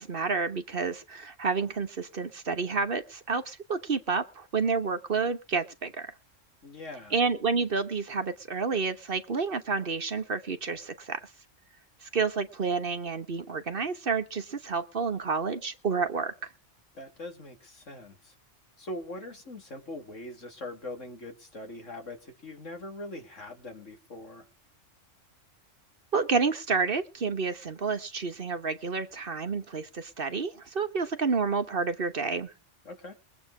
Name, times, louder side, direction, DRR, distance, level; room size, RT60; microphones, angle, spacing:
voice 1, 0.0-6.1 7.1-11.2 12.0-16.5 26.1-32.5, right 4 dB, 50° right, 1.3 m, -29 dB
voice 2, 6.6-7.1 16.9-18.3 18.8-24.5 32.8-33.1, left 1 dB, 85° left, 3.2 m, -42 dB
21.5 x 8.3 x 4.9 m
omnidirectional pair, 1.3 m